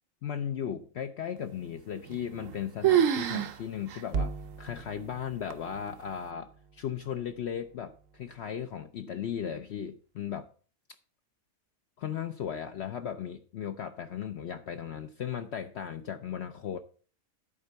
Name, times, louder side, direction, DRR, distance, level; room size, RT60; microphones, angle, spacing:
voice 1, 0.2-4.3 4.6-10.5 12.0-16.8, left 8 dB, 60° left, 7 dB, 0.8 m, -36 dB
sound 1, 2.1-2.6 2.8-3.6 3.9-4.0 4.7-4.8 5.5-5.9, right 10 dB, 75° right, 1.2 m, -26 dB
sound 2, 4.1-8.5, right 4 dB, 60° right, 0.8 m, -40 dB
11.0 x 4.4 x 6.8 m, 0.41 s
omnidirectional pair, 1.4 m